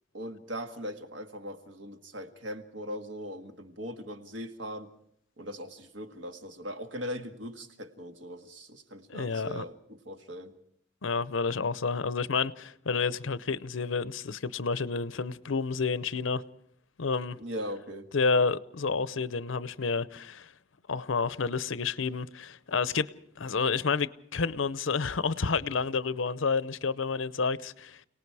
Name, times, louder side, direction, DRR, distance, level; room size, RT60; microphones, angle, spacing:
voice 1, 0.1-4.9 5.4-10.5 17.4-18.1, equal, 75° right, 1.8 m, -40 dB
voice 2, 9.1-9.6 11.0-16.4 17.0-17.4 18.1-20.5 20.9-23.1 23.4-28.0, left 4 dB, 85° left, 0.7 m, -29 dB
29.5 x 18.5 x 4.8 m
head